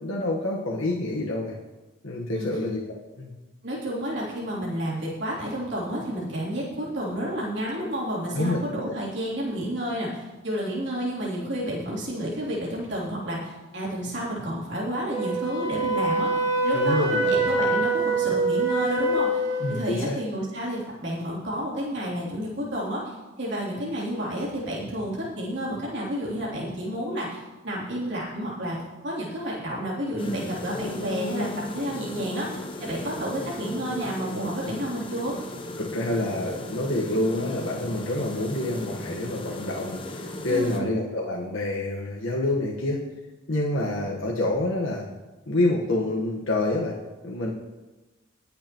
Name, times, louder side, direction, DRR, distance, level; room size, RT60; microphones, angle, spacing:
voice 1, 0.0-1.6 2.0-3.3 8.3-8.6 8.9-9.0 16.7-17.5 19.6-20.2 35.8-43.0 43.5-45.0 45.5-47.0 47.2-47.5, left 2 dB, 75° left, -3 dB, 1.5 m, -27 dB
voice 2, 3.6-19.4 19.7-31.5 31.7-35.3 40.5-40.9, equal, 60° right, -6 dB, 3.3 m, -30 dB
Wind instrument woodwind instrument, 15.1-19.8, right 2 dB, 20° right, 2.3 m, -24 dB
sound 1, 30.2-40.8, left 1 dB, 25° left, 0.9 m, -36 dB
21.0 x 7.7 x 3.1 m, 1.1 s
head